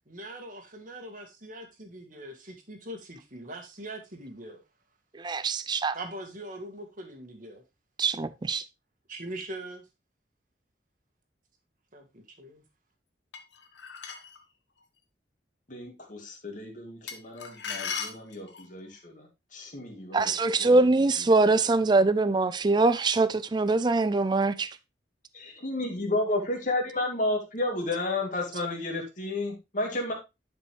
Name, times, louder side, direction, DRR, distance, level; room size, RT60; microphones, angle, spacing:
voice 1, 0.1-4.6 5.9-7.6 9.1-9.9 11.9-12.6, right 1 dB, 50° right, 1.8 m, -42 dB
voice 2, 5.2-6.0 8.0-8.6 20.1-24.7, right 3 dB, 25° right, 0.4 m, -23 dB
sound 1, 13.3-14.4 17.1-18.7, left 6 dB, 85° left, 1.4 m, -37 dB
voice 3, 15.7-19.3 19.5-20.3 20.6-20.8 25.3-30.1, left 2 dB, 45° left, 2.4 m, -32 dB
10.5 x 5.3 x 3.1 m
head